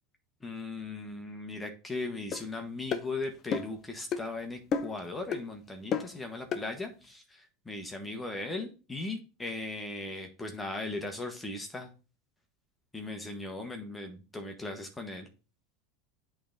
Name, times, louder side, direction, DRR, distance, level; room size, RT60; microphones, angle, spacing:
voice 1, 0.4-11.9 12.9-15.3, left 2 dB, 15° left, 4 dB, 1.2 m, -38 dB
sound 1, 2.3-2.4 2.9-3.1 3.5-3.8 4.1-4.3 4.7-5.0 5.3-5.5 5.9-6.2 6.5-6.7, left 6 dB, 40° left, 0.7 m, -31 dB
8.4 x 3.5 x 3.9 m, 0.33 s
hypercardioid pair, 105°, 0 cm